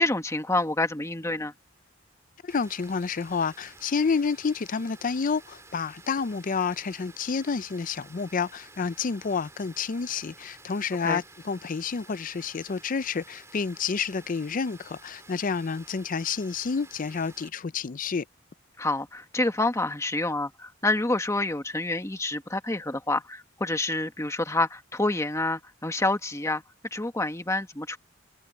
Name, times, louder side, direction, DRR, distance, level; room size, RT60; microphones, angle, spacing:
voice 1, 0.0-1.5 11.0-11.2 18.8-26.6 26.9-28.0, left 2 dB, 15° left, 1.4 m, -28 dB
voice 2, 2.4-18.2, left 5 dB, 45° left, 0.5 m, -29 dB
Water, 2.5-17.5, right 3 dB, 15° right, 3.0 m, -51 dB
head